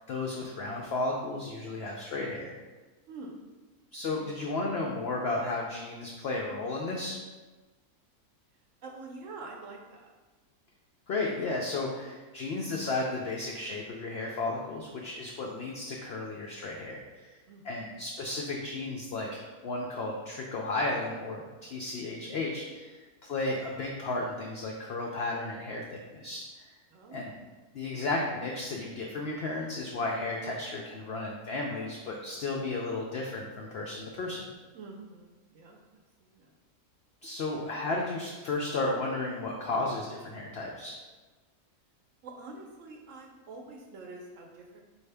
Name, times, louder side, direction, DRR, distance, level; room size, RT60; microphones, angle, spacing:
voice 1, 0.0-2.5 3.9-7.2 11.1-17.4 17.6-26.7 27.1-27.3 27.7-34.4 37.2-41.0, left 2 dB, 80° left, -1 dB, 0.5 m, -34 dB
voice 2, 3.1-3.4 8.8-10.1 17.5-17.6 26.9-27.2 34.7-35.8 36.2-36.5 42.2-44.8, right 3 dB, 70° right, 1 dB, 0.8 m, -46 dB
4.7 x 2.7 x 3.3 m, 1.2 s
omnidirectional pair, 1.6 m